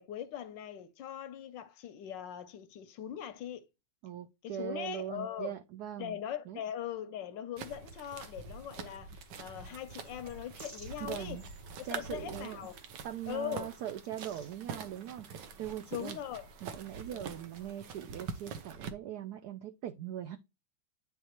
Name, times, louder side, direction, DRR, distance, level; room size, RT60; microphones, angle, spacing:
voice 1, 0.0-3.7 4.4-5.6 6.0-11.4 11.8-12.8 13.3-13.7 15.9-16.5 17.1-17.4, left 10 dB, 75° left, 1.1 m, -41 dB
voice 2, 4.0-6.2 6.5-6.6 11.0-11.4 11.8-16.2 16.6-20.4, right 11 dB, 90° right, 0.8 m, -41 dB
sound 1, 7.6-18.9, right 6 dB, 65° right, 1.3 m, -45 dB
sound 2, 9.6-18.6, right 1 dB, 45° right, 3.3 m, -60 dB
9.4 x 3.7 x 2.9 m
omnidirectional pair, 2.2 m